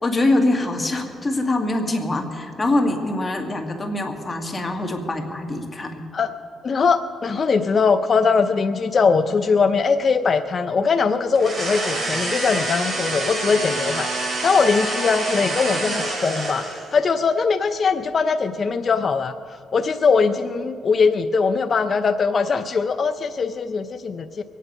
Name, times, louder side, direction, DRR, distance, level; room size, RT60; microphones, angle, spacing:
voice 1, 0.0-6.0, left 2 dB, 25° left, 3 dB, 1.9 m, -23 dB
voice 2, 6.6-16.6 16.9-19.3 19.7-24.4, left 5 dB, 45° left, 8 dB, 0.5 m, -21 dB
sound 1, 11.3-17.0, right 2 dB, 35° right, 3.4 m, -26 dB
22.5 x 9.2 x 5.4 m, 2.3 s
cardioid pair, 90°, 0 cm